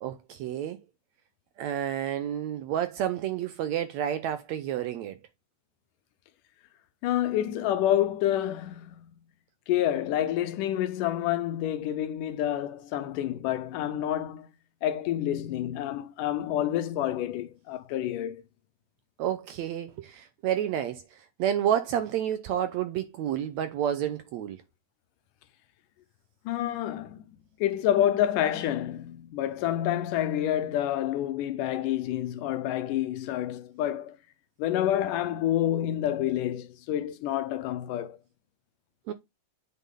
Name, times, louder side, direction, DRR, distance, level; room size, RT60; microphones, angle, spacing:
voice 1, 0.0-0.8 1.6-5.2 19.2-21.0 21.4-24.6 39.1-39.2, right 10 dB, 75° right, 1.7 m, -30 dB
voice 2, 7.0-9.1 9.7-14.5 14.8-18.4 26.5-27.2 27.6-34.2 34.6-38.2, left 12 dB, 80° left, 2.3 m, -28 dB
8.3 x 5.9 x 3.8 m
omnidirectional pair, 3.8 m